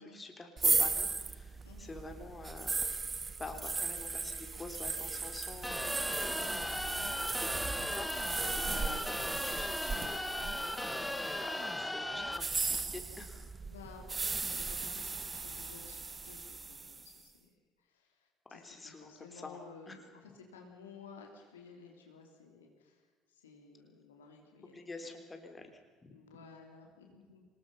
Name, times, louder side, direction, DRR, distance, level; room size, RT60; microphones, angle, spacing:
voice 1, 0.0-3.1 3.4-6.6 7.4-8.4 8.7-10.2 10.8-13.5 18.5-19.6 19.9-20.0 24.7-26.1, left 3 dB, 20° left, 5 dB, 3.7 m, -48 dB
sound 1, 0.6-11.5 12.3-17.1, right 4 dB, 25° right, 1.6 m, -36 dB
voice 2, 1.6-2.0 6.3-6.6 8.7-8.9 13.7-17.5 17.8-25.1 26.1-27.4, left 5 dB, 80° left, 2 dB, 3.4 m, -54 dB
sound 2, 5.6-12.4, left 1 dB, 5° left, 1.6 m, -37 dB
25.0 x 20.5 x 5.7 m, 1.5 s
figure-of-eight pair, 60°, 0 cm